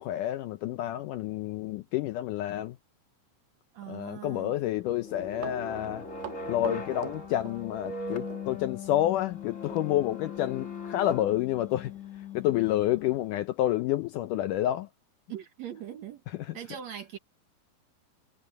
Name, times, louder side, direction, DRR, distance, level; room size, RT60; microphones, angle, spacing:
voice 1, 0.0-2.8 3.9-6.1 6.5-11.9 12.3-14.9, left 13 dB, 80° left, 1.9 m, -29 dB
voice 2, 3.7-4.6 15.3-16.2 16.5-17.2, right 10 dB, 60° right, 2.0 m, -41 dB
sound 1, 4.6-13.4, left 3 dB, 30° left, 1.7 m, -40 dB
Run, 5.1-8.0 8.3-8.4 9.7-9.9 10.3-10.4 10.9-11.0 11.3-11.5 12.0-12.1, right 14 dB, 85° right, 3.0 m, -43 dB
omnidirectional pair, 4.3 m